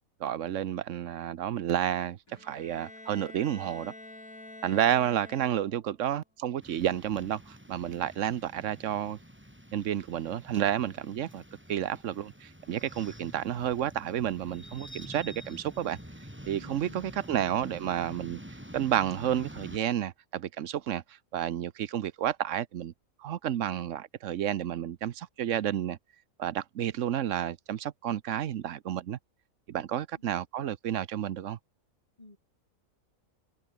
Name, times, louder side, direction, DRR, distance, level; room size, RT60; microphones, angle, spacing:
voice 1, 0.2-3.9 4.6-9.2 9.7-11.4 11.7-16.0 16.5-18.4 18.7-21.0 21.3-22.9 23.2-26.0 26.4-29.2 29.7-31.6, right 10 dB, 65° right, 1.1 m, -31 dB
Bowed string instrument, 2.3-5.9, left 2 dB, 85° left, 8.2 m, -48 dB
sound 1, 6.6-19.8, equal, 10° right, 7.2 m, -47 dB
voice 2, 16.6-17.0 30.1-30.2 32.2-32.4, left 2 dB, 30° left, 3.4 m, -52 dB
omnidirectional pair, 1.4 m